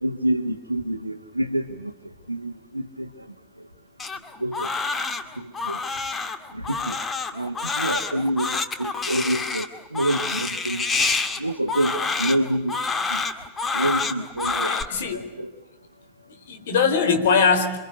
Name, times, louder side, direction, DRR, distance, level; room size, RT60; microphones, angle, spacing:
voice 1, 0.0-1.9 2.3-3.1 4.4-4.7 5.4-5.8 6.5-7.0 7.3-10.9 11.4-12.8 13.1-13.2 13.7-14.7 15.1-15.5, right 1 dB, 85° right, 3 dB, 1.3 m, -27 dB
Crying sobbing, 4.0-14.8, left 4 dB, 20° left, 2.2 m, -27 dB
voice 2, 14.7-15.2 16.3-17.8, left 5 dB, 55° left, 7 dB, 4.3 m, -21 dB
29.0 x 24.5 x 8.1 m, 1.1 s
figure-of-eight pair, 90°, 0 cm